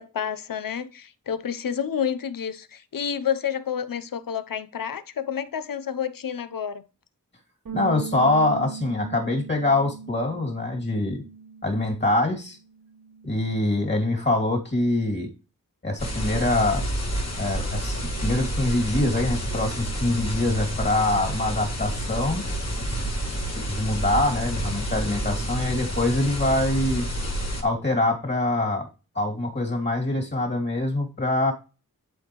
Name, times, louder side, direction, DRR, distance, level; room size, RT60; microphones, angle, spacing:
voice 1, 0.0-6.8, left 8 dB, 75° left, 0.7 m, -29 dB
voice 2, 7.7-11.2 11.6-12.6 13.2-15.3 15.8-16.8 17.4-22.4 23.7-27.1 27.6-28.9 29.1-31.5, left 2 dB, 30° left, 2.5 m, -24 dB
sound 1, 7.7-12.2 12.5-13.9, right 5 dB, 90° right, 2.4 m, -39 dB
sound 2, 16.0-27.6, right 1 dB, 50° left, 2.7 m, -29 dB
11.5 x 4.4 x 3.0 m
wide cardioid pair, 90°, 34 cm